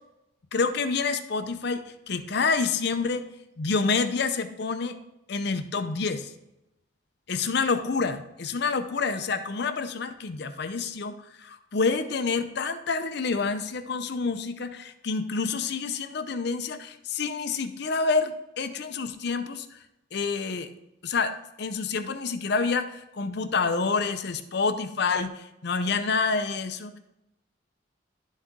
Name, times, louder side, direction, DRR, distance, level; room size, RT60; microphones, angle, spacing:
voice 1, 0.5-3.2 3.6-4.9 5.3-6.3 7.3-19.7 20.1-20.7 21.0-21.3 21.6-27.0, left 4 dB, 60° left, 8 dB, 0.6 m, -28 dB
11.5 x 4.3 x 3.6 m, 0.88 s
head